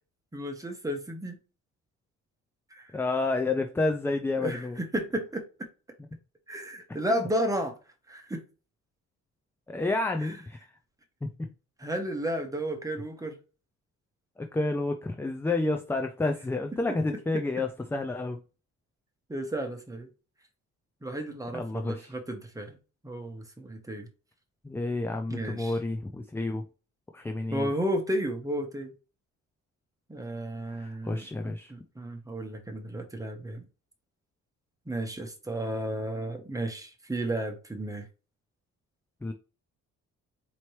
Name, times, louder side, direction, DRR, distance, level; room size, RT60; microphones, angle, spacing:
voice 1, 0.3-1.4 2.7-2.9 4.4-5.4 6.5-7.7 8.1-8.4 11.8-13.4 19.3-20.1 21.0-22.8 23.0-24.1 25.3-25.8 27.5-28.9 30.1-33.6 34.9-38.0, right 1 dB, 10° right, 1.1 m, -33 dB
voice 2, 2.9-4.8 7.1-7.2 9.7-10.7 11.2-11.5 14.4-18.4 21.5-22.1 24.6-26.6 27.1-27.7 30.8-31.7 39.2-39.3, left 2 dB, 10° left, 0.4 m, -30 dB
4.2 x 3.0 x 3.1 m
cardioid pair, 90°, 30 cm